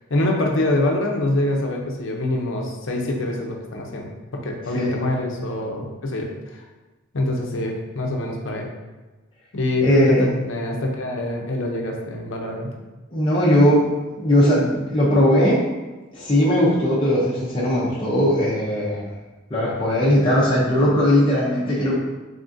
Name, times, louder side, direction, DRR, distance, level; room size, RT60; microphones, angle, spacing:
voice 1, 0.1-6.6 7.1-8.7 9.5-12.7, left 1 dB, 65° left, 1 dB, 0.6 m, -25 dB
voice 2, 9.8-10.3 13.1-13.8 14.2-15.7 16.1-19.1 19.5-22.0, equal, 25° left, -7 dB, 0.5 m, -18 dB
3.6 x 3.5 x 2.6 m, 1.2 s
head